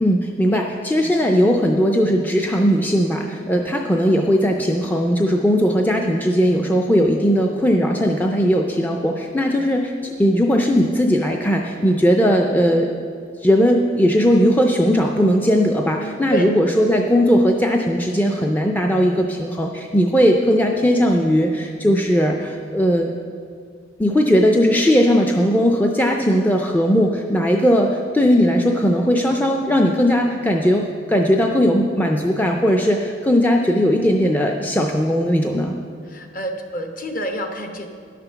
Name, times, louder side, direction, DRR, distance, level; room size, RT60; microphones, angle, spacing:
voice 1, 0.0-12.9 13.4-23.1 24.0-35.8, equal, 10° left, 1 dB, 0.4 m, -18 dB
voice 2, 36.1-37.9, right 1 dB, 45° left, 5 dB, 0.9 m, -28 dB
11.0 x 5.9 x 6.8 m, 2.3 s
head